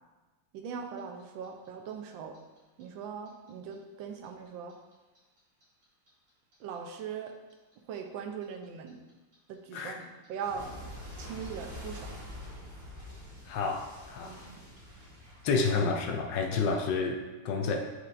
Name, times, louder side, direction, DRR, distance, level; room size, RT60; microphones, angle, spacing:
voice 1, 0.5-2.3 2.8-4.8 6.6-7.3 7.9-9.0 9.5-10.7 11.2-12.1 14.2-14.6, right 6 dB, 75° right, 3 dB, 1.4 m, -40 dB
Clock, 0.7-3.7 4.0-7.0 7.3-16.1, left 1 dB, 45° right, 2.7 m, -46 dB
voice 2, 13.4-14.4 15.4-17.9, left 4 dB, 70° left, 3 dB, 1.2 m, -30 dB
8.6 x 4.8 x 2.6 m, 1.2 s
omnidirectional pair, 2.2 m